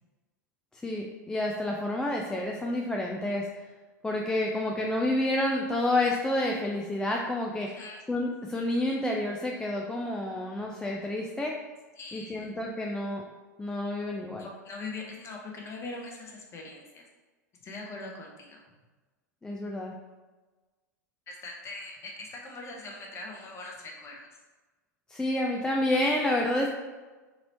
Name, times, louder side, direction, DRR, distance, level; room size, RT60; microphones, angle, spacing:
voice 1, 0.8-3.5 4.0-7.8 8.1-11.6 12.1-13.2 13.6-14.5 19.4-19.9 25.1-26.7, left 1 dB, 10° left, -1 dB, 0.3 m, -29 dB
voice 2, 7.6-8.0 12.0-12.5 14.4-17.0 17.6-18.6 21.3-24.3, left 3 dB, 30° left, 0 dB, 0.8 m, -41 dB
3.8 x 3.0 x 3.0 m, 1.3 s
figure-of-eight pair, 90°, 10 cm